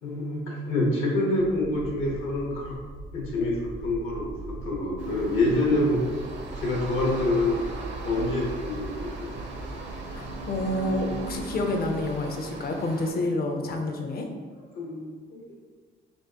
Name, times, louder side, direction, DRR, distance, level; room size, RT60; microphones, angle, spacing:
voice 1, 0.0-2.8 3.1-6.1 6.6-7.6 8.0-9.5 13.8-13.9 14.7-15.5, left 2 dB, 80° left, -2 dB, 1.1 m, -27 dB
sound 1, 1.4-11.4, right 2 dB, 80° right, 1.1 m, -42 dB
sound 2, 3.6-12.7, right 2 dB, 35° right, 0.5 m, -41 dB
sound 3, 5.0-13.1, right 2 dB, 65° right, 0.8 m, -40 dB
voice 2, 10.1-14.3, left 1 dB, 50° left, 4 dB, 0.6 m, -29 dB
4.5 x 2.8 x 2.8 m, 1.5 s
cardioid pair, 90°, 20 cm